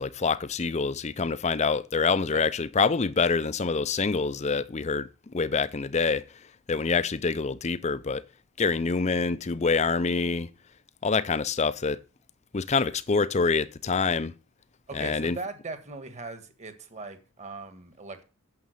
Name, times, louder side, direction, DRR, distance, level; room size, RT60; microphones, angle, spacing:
voice 1, 0.0-6.2 6.7-8.2 8.6-10.5 11.0-12.0 12.5-14.3 14.9-15.4, left 4 dB, 30° left, 0.5 m, -26 dB
voice 2, 14.9-18.2, right 3 dB, 30° right, 1.5 m, -39 dB
9.4 x 7.3 x 6.5 m
head